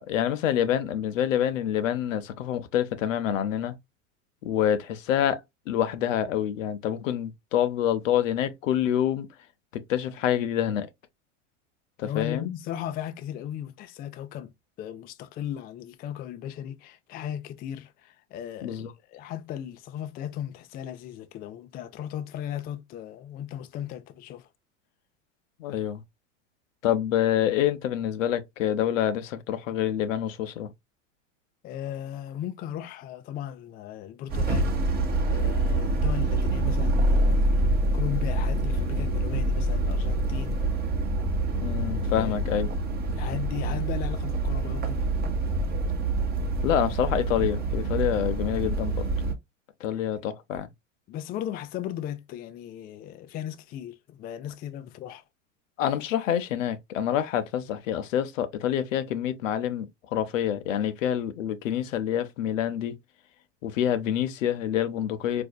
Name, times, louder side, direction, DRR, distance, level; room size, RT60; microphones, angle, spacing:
voice 1, 0.0-3.8 4.4-5.4 5.7-9.3 9.7-10.9 12.0-12.5 18.6-18.9 25.6-26.0 26.8-30.7 41.6-42.7 46.6-49.1 49.8-50.7 55.8-59.9 60.1-62.9 63.6-65.4, left 10 dB, 85° left, 0.7 m, -27 dB
voice 2, 12.0-14.5 14.8-24.5 31.6-34.7 35.3-37.7 37.9-40.6 42.1-42.3 43.1-45.1 50.1-50.2 51.1-55.2, left 10 dB, 25° left, 0.4 m, -36 dB
sound 1, 34.3-49.3, right 2 dB, 25° right, 0.9 m, -26 dB
4.1 x 2.6 x 2.2 m
hypercardioid pair, 105°, 38 cm